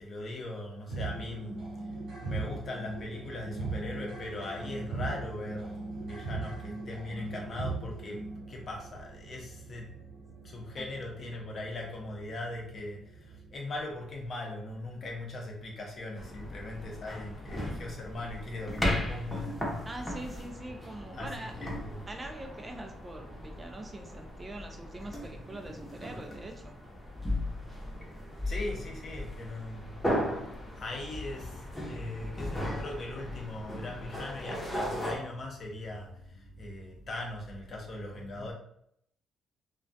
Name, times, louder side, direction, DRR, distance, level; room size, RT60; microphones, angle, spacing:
voice 1, 0.0-1.7 2.2-9.9 10.4-19.6 21.1-22.1 28.4-38.5, left 2 dB, 50° left, 0 dB, 0.6 m, -40 dB
sound 1, 0.9-13.5, right 3 dB, 65° right, 0.8 m, -40 dB
sound 2, 16.2-35.2, left 1 dB, 10° left, 0.7 m, -37 dB
voice 2, 19.9-21.5 22.1-26.7, right 2 dB, 25° right, 4 dB, 0.3 m, -43 dB
2.3 x 2.2 x 2.5 m, 0.70 s
cardioid pair, 90°, 0 cm